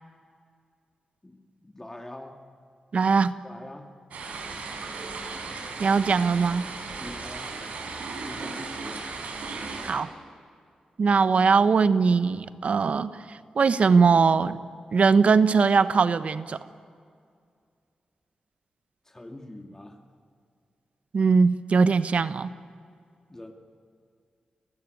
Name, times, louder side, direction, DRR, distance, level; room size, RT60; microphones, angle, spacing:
voice 1, 1.2-2.3 3.4-3.9 7.0-7.5 8.2-9.1 19.1-20.0 23.3-23.5, left 1 dB, 20° left, 3 dB, 2.2 m, -43 dB
voice 2, 2.9-3.3 5.8-6.6 9.8-10.1 11.0-13.1 13.6-14.6 14.9-16.6 21.1-22.5, right 5 dB, 60° right, 13 dB, 1.0 m, -20 dB
sound 1, 4.1-9.9, right 4 dB, 90° right, 4.7 m, -36 dB
29.5 x 16.0 x 9.5 m, 2.2 s
cardioid pair, 70°, 2 cm